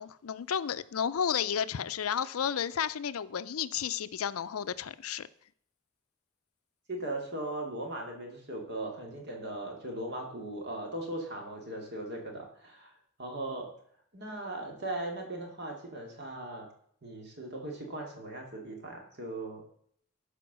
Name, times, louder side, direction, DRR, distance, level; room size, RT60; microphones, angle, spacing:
voice 1, 0.0-5.3, left 8 dB, 90° left, 0.5 m, -32 dB
voice 2, 6.9-12.9 13.2-13.7 14.1-16.7 17.0-19.6, right 1 dB, 50° right, 2.6 m, -38 dB
12.5 x 5.1 x 6.2 m
head